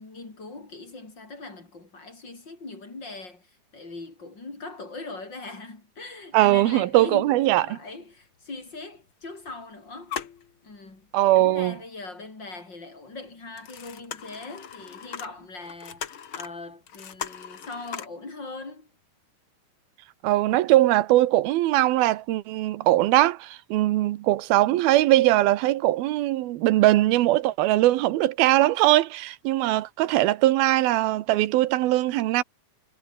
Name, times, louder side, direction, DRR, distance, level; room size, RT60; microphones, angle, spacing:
voice 1, 0.0-10.2 10.6-18.9, left 3 dB, 30° left, 5.4 m, -40 dB
voice 2, 6.3-7.8 11.1-11.7 20.2-32.4, right 16 dB, 80° right, 2.8 m, -21 dB
sound 1, 6.9-7.0 7.3-7.4 8.3-8.4 8.9-9.6 9.9-11.0 11.6-11.7 13.3-18.1, left 8 dB, 50° left, 1.7 m, -39 dB
omnidirectional pair, 4.3 m